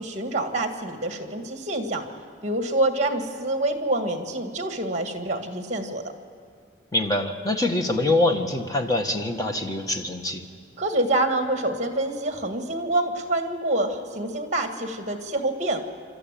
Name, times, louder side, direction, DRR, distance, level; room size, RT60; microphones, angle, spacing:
voice 1, 0.0-2.0 2.4-6.0 10.8-15.8, right 1 dB, 40° right, 6 dB, 1.9 m, -26 dB
voice 2, 6.9-10.4, left 2 dB, 20° left, 4 dB, 1.4 m, -24 dB
26.0 x 13.0 x 9.1 m, 2.2 s
head